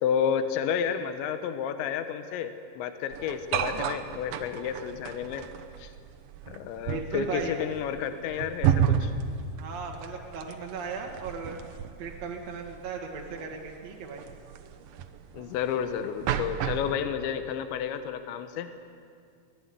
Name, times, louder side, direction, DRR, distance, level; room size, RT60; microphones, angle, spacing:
voice 1, 0.0-5.5 5.8-5.9 6.4-9.1 15.3-18.7, left 8 dB, 85° left, 9 dB, 3.3 m, -31 dB
sound 1, 3.1-16.9, right 8 dB, 75° right, 2.2 m, -32 dB
voice 2, 6.9-7.6 9.6-11.6 12.0-14.2, right 5 dB, 50° right, 0 dB, 2.4 m, -36 dB
24.0 x 18.5 x 9.7 m, 2.3 s
omnidirectional pair, 5.2 m